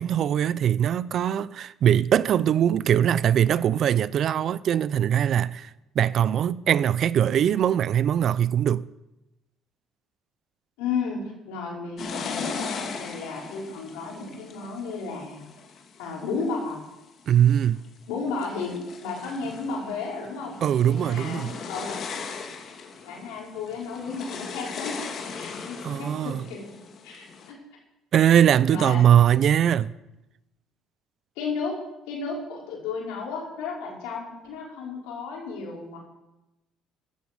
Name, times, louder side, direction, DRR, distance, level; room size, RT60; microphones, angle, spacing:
voice 1, 0.0-5.7 6.0-8.8 17.3-17.8 20.6-21.5 25.8-26.4 28.1-29.9, right 10 dB, 60° right, 0.6 m, -21 dB
voice 2, 10.8-15.4 16.0-16.9 18.1-20.6 20.9-21.4 21.7-22.0 23.0-25.0 25.3-26.7 27.0-27.6 28.7-29.0 31.4-31.8 32.1-36.0, left 4 dB, 85° left, 5.2 m, -33 dB
sound 1, 12.0-16.7 17.3-17.9 18.3-27.5, left 5 dB, 55° left, 2.3 m, -38 dB
15.0 x 12.0 x 5.3 m
supercardioid pair, 70°, 0 cm